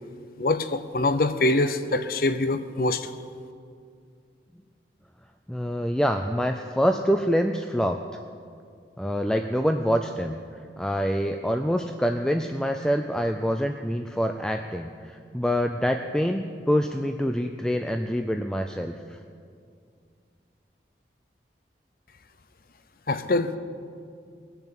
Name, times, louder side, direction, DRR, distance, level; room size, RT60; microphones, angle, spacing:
voice 1, 0.4-3.1 23.1-23.6, left 2 dB, 55° left, 11 dB, 0.7 m, -24 dB
voice 2, 5.5-8.0 9.0-10.4 10.8-19.2, equal, 5° left, 5 dB, 0.4 m, -26 dB
20.5 x 6.9 x 8.2 m, 2.3 s
head